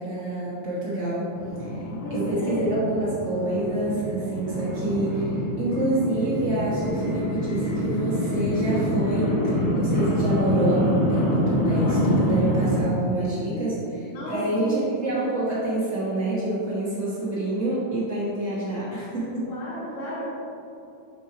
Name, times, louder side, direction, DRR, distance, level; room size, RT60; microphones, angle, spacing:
voice 1, 0.0-1.3 1.6-5.3 5.6-9.4 9.7-19.5, right 1 dB, 70° right, -10 dB, 0.6 m, -27 dB
sound 1, 1.3-12.8, equal, 60° left, 1.1 m, -26 dB
voice 2, 2.0-2.8 13.5-13.6 14.1-14.7 19.5-20.2, equal, 85° left, -7 dB, 3.0 m, -33 dB
7.1 x 2.9 x 4.7 m, 2.7 s
omnidirectional pair, 3.5 m